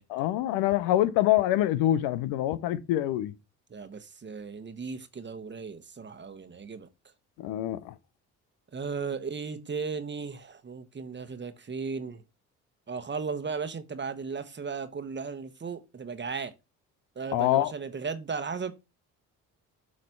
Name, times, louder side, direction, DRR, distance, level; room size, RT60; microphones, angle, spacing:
voice 1, 0.1-3.3 7.4-8.0 17.3-17.7, left 14 dB, 80° left, 0.6 m, -25 dB
voice 2, 3.7-6.9 8.7-12.2 12.9-16.5 17.1-18.7, right 5 dB, 30° right, 1.1 m, -36 dB
7.6 x 3.2 x 5.4 m
hypercardioid pair, 60°, 37 cm